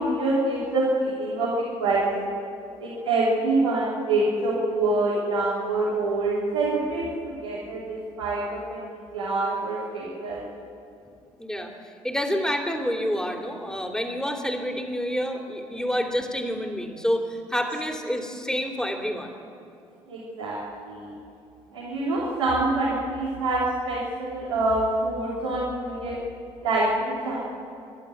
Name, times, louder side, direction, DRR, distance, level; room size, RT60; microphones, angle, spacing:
voice 1, 0.0-2.3 2.8-10.4 20.1-20.6 20.8-21.1 21.7-26.2 26.6-27.4, right 2 dB, 80° right, -8 dB, 3.5 m, -26 dB
voice 2, 11.4-11.7 12.0-19.4, equal, 5° left, 2 dB, 3.1 m, -28 dB
26.5 x 12.0 x 9.3 m, 2.6 s
figure-of-eight pair, 50°, 16 cm